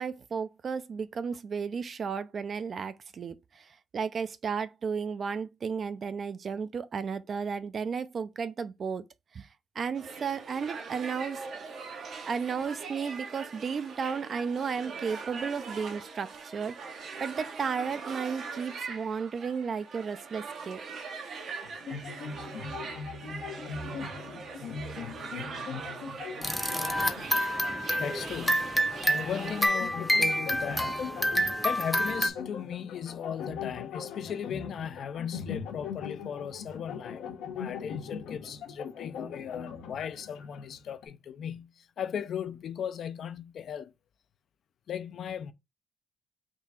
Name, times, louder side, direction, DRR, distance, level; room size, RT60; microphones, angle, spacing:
voice 1, 0.0-9.0 9.3-9.5 9.8-11.4 12.3-20.8, right 6 dB, 45° right, 0.4 m, -34 dB
sound 1, 9.9-29.7, right 4 dB, 65° right, 0.8 m, -41 dB
sound 2, 21.6-27.4 27.7-27.8 28.8-41.1, left 6 dB, 90° left, 0.8 m, -40 dB
sound 3, 26.4-32.3, equal, 5° left, 0.7 m, -28 dB
voice 2, 28.0-28.8 29.1-31.0 31.6-37.2 37.5-43.9 44.9-45.5, left 8 dB, 65° left, 0.4 m, -37 dB
3.7 x 2.4 x 4.2 m
cardioid pair, 90°, 0 cm